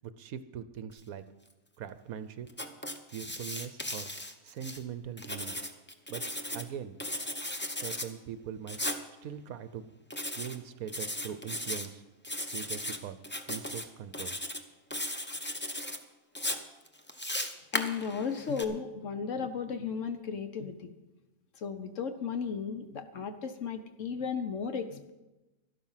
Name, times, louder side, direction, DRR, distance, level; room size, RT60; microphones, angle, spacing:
voice 1, 0.0-1.3 1.8-2.5 3.1-4.1 4.4-5.6 6.1-7.0 7.7-8.8 9.2-9.9 10.4-12.0 12.5-13.2 13.5-14.4, right 8 dB, 70° right, 12 dB, 1.0 m, -41 dB
Writing, 2.5-4.8 5.2-6.7 7.0-8.1 8.7-9.0 10.1-10.6 10.9-11.9 12.2-13.0 13.2-13.8 14.1-14.6 14.9-16.0 16.4-18.6, left 1 dB, 15° left, 0.4 m, -36 dB
voice 2, 17.7-20.9 21.6-25.1, left 6 dB, 55° left, 9 dB, 1.1 m, -35 dB
12.5 x 12.0 x 5.7 m, 1.0 s
omnidirectional pair, 1.7 m